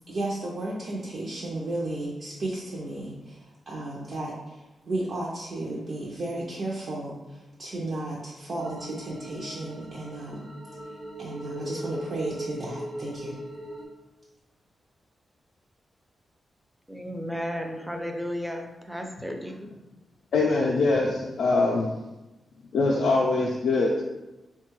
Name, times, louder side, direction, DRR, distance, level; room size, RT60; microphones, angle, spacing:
voice 1, 0.1-3.4 3.7-10.5 11.2-13.4, right 2 dB, 60° right, -5 dB, 0.5 m, -34 dB
sound 1, 8.6-13.8, right 1 dB, 85° right, 0.8 m, -39 dB
voice 2, 16.9-19.7, equal, 5° right, 3 dB, 0.4 m, -34 dB
voice 3, 20.3-21.9 22.7-24.0, left 3 dB, 90° left, -3 dB, 0.3 m, -23 dB
3.5 x 2.2 x 3.0 m, 1.1 s
cardioid pair, 100°, 0 cm